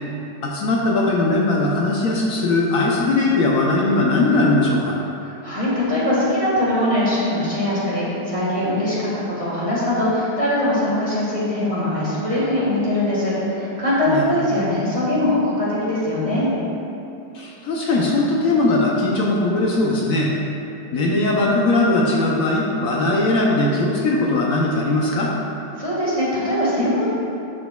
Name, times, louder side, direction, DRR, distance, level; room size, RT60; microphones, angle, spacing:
voice 1, 0.4-5.0 14.1-14.3 17.3-20.3 20.9-25.3, left 2 dB, 65° left, -3 dB, 0.9 m, -19 dB
voice 2, 5.2-16.5 25.8-27.1, left 1 dB, 20° right, -9 dB, 1.4 m, -21 dB
10.5 x 5.1 x 2.3 m, 2.8 s
omnidirectional pair, 2.0 m